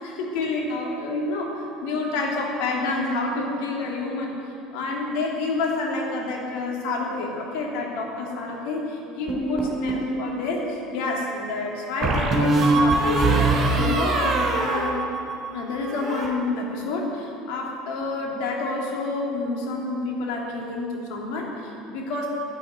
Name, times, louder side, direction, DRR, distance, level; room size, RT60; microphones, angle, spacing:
voice 1, 0.0-4.3 4.7-15.0 15.5-22.3, left 3 dB, 65° left, -2 dB, 3.0 m, -28 dB
sound 1, 9.3-10.1 12.0-15.5 15.8-16.3, right 2 dB, 40° right, 4.0 m, -22 dB
11.0 x 9.7 x 9.2 m, 2.8 s
hypercardioid pair, 70°, 0 cm